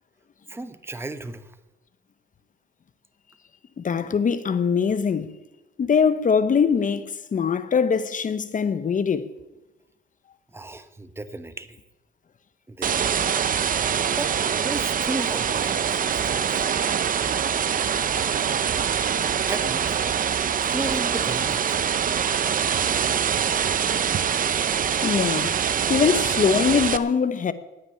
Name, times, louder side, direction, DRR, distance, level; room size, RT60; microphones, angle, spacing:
voice 1, 0.5-1.6 10.5-11.8 12.7-13.3 14.1-14.3 14.6-16.7 19.5-19.9 20.6-21.8, right 2 dB, 10° right, 1.0 m, -34 dB
voice 2, 3.8-5.4 5.8-9.3 25.0-25.6 25.9-27.5, left 6 dB, 40° left, 0.9 m, -22 dB
sound 1, 12.8-27.0, right 8 dB, 45° right, 0.7 m, -24 dB
17.5 x 6.0 x 9.9 m
cardioid pair, 90°, 20 cm